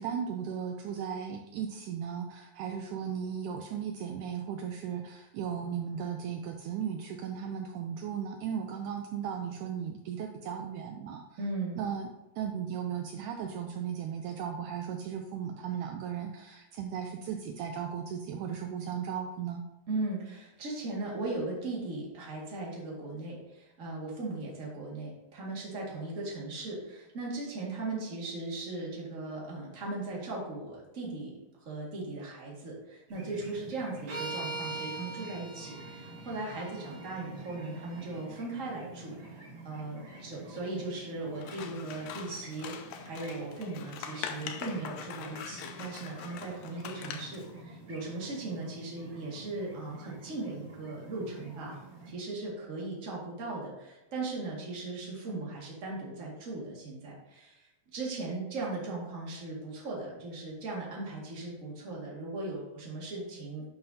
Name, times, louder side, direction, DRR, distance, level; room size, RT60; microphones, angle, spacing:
voice 1, 0.0-11.2 11.8-12.1 12.4-19.6, right 8 dB, 85° right, 4 dB, 1.8 m, -36 dB
voice 2, 11.4-11.8 19.9-31.4 31.6-42.7 43.0-51.8 52.1-63.6, right 2 dB, 30° right, -4 dB, 1.7 m, -38 dB
sound 1, 33.1-52.1, right 1 dB, 45° right, 1.3 m, -49 dB
sound 2, 34.1-38.3, right 2 dB, 70° right, 3.7 m, -42 dB
Scissors, 41.4-47.5, left 8 dB, 85° left, 2.3 m, -43 dB
11.0 x 5.8 x 2.8 m, 0.97 s
omnidirectional pair, 4.1 m